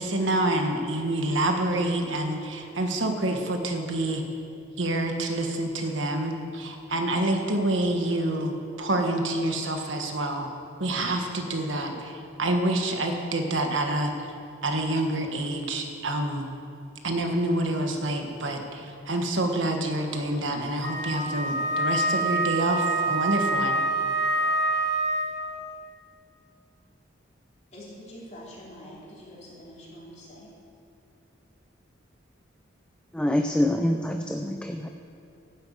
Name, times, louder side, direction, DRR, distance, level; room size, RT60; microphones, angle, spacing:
voice 1, 0.0-4.2 4.8-10.5 10.8-14.1 14.6-16.5 17.0-23.8, right 1 dB, 75° right, 4 dB, 1.4 m, -27 dB
Wind instrument woodwind instrument, 20.8-25.5, right 2 dB, 55° left, 1.6 m, -26 dB
voice 2, 27.7-30.5, equal, 35° left, -6 dB, 3.6 m, -45 dB
voice 3, 33.1-34.9, left 1 dB, 5° left, 4 dB, 0.4 m, -25 dB
12.5 x 8.1 x 8.5 m, 2.6 s
head